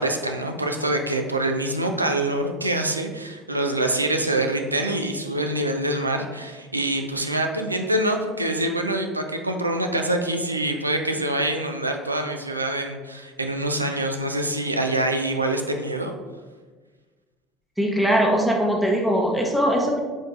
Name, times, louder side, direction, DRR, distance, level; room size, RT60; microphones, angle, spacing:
voice 1, 0.0-16.1, right 1 dB, 85° right, 4 dB, 0.3 m, -25 dB
voice 2, 17.8-20.0, equal, 5° right, -1 dB, 0.7 m, -21 dB
4.9 x 4.5 x 2.4 m, 1.4 s
figure-of-eight pair, 60°, 0 cm